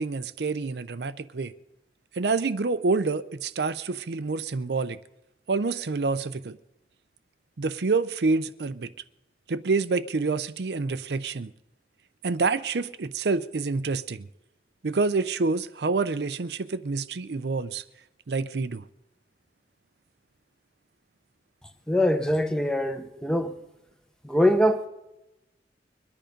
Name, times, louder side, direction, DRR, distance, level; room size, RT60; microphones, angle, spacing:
voice 1, 0.0-1.5 2.2-5.0 5.5-6.6 7.6-8.9 9.5-11.5 12.2-14.3 14.8-17.8 18.3-18.8, right 4 dB, 75° right, 0.6 m, -27 dB
voice 2, 21.9-23.5 24.2-24.9, left 1 dB, 5° left, 0.9 m, -23 dB
22.5 x 10.0 x 5.2 m
head